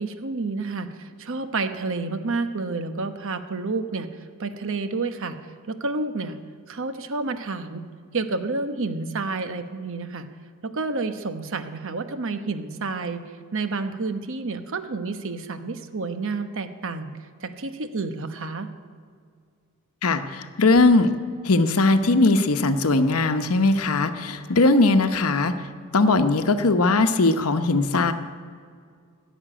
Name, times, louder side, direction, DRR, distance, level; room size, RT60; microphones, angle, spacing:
voice 1, 0.0-4.1 4.4-5.4 5.7-6.4 6.7-7.8 8.1-10.3 10.6-13.2 13.5-17.1 17.4-18.7, right 3 dB, 65° right, 9 dB, 1.0 m, -29 dB
voice 2, 20.0-21.1 21.4-25.6 25.9-28.1, left 3 dB, 80° left, 9 dB, 0.9 m, -19 dB
16.0 x 7.3 x 10.0 m, 2.1 s
head